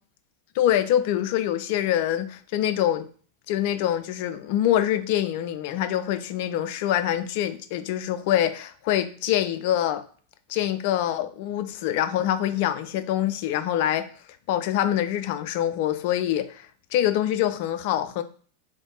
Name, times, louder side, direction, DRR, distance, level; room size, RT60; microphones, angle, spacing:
voice 1, 0.6-3.1 3.5-10.0 10.5-14.1 14.5-16.7 16.9-18.2, left 11 dB, 50° left, 0.4 m, -25 dB
3.5 x 3.4 x 3.9 m
figure-of-eight pair, 90°, 0 cm